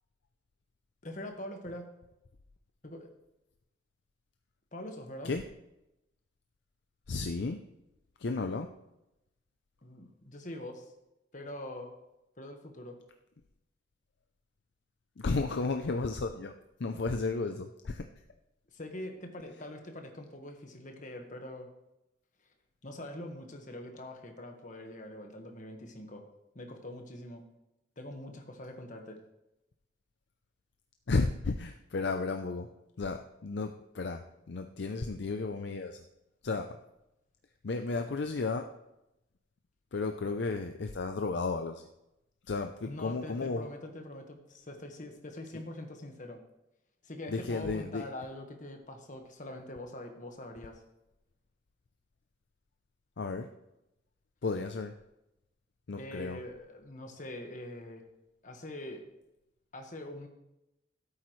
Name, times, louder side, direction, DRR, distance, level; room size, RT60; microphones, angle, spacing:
voice 1, 1.0-1.8 2.8-3.1 4.7-5.3 9.8-10.9 11.3-11.9 12.4-13.0 18.7-21.7 22.8-26.2 26.5-27.4 28.0-29.2 42.8-46.4 47.0-50.8 56.0-58.0 58.4-59.0 59.7-60.3, left 1 dB, 40° left, 4 dB, 1.5 m, -43 dB
voice 2, 7.1-7.6 8.2-8.7 15.2-16.5 16.8-18.1 31.1-32.7 33.0-36.0 36.4-36.8 37.6-38.7 39.9-41.9 42.4-43.7 45.5-45.6 47.3-48.1 53.2-53.5 54.4-54.9 55.9-56.4, left 3 dB, 60° left, 6 dB, 0.5 m, -33 dB
15.5 x 8.6 x 3.2 m, 0.91 s
head